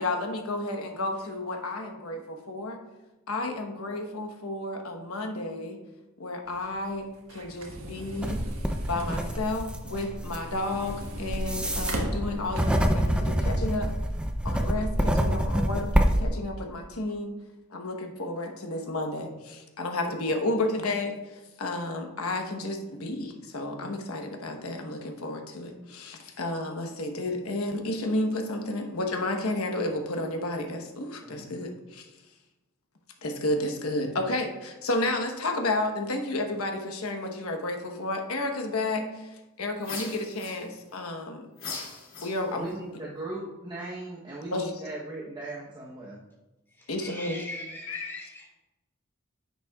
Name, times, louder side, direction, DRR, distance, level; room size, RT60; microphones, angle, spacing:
voice 1, 0.0-2.8 3.3-5.8 6.2-8.4 8.9-13.9 14.4-17.4 17.7-32.1 33.2-41.4 42.2-42.7 44.5-44.7 46.9-47.4 47.9-48.1, left 2 dB, 85° left, 4 dB, 1.1 m, -31 dB
sound 1, 6.5-13.0, right 1 dB, 80° right, 1.4 m, -38 dB
sound 2, 8.2-16.3, equal, 5° right, 0.5 m, -26 dB
sound 3, 39.8-41.0 41.6-42.7, left 4 dB, 70° left, 2.5 m, -39 dB
voice 2, 42.5-46.2, right 2 dB, 20° right, -5 dB, 0.9 m, -38 dB
voice 3, 46.7-48.4, left 1 dB, 10° left, -4 dB, 2.7 m, -41 dB
10.0 x 8.2 x 2.3 m, 1.1 s
head